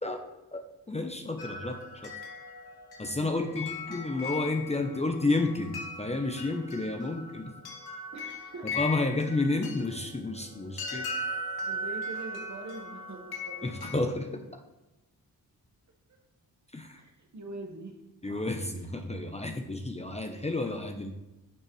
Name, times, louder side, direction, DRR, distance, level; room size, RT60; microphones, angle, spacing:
voice 1, 0.5-1.8 2.0-2.1 3.0-7.5 8.7-11.1 13.6-14.6 16.7-17.0 18.2-21.1, left 2 dB, 15° left, 4 dB, 0.8 m, -31 dB
sound 1, 1.4-14.0, left 2 dB, 70° left, 1.8 m, -39 dB
voice 2, 3.2-3.6 8.1-8.9 11.6-13.7 17.0-18.0 18.2-18.3, right 2 dB, 45° right, 3 dB, 1.5 m, -43 dB
11.0 x 6.4 x 3.3 m, 1.0 s
cardioid pair, 70°, 39 cm